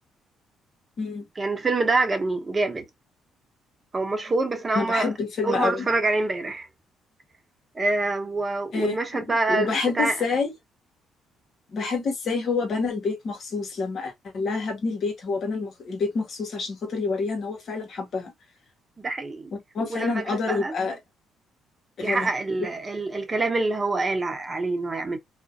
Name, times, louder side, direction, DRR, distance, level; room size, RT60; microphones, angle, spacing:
voice 1, 1.4-2.9 3.9-5.1 5.4-6.7 7.7-10.2 19.0-19.5 19.9-20.7 22.0-25.2, right 3 dB, 30° right, 0.7 m, -26 dB
voice 2, 4.7-5.9 8.7-10.5 11.7-18.3 19.5-21.0 22.0-22.3, left 4 dB, 60° left, 1.0 m, -28 dB
2.5 x 2.1 x 2.5 m
supercardioid pair, 60°, 0 cm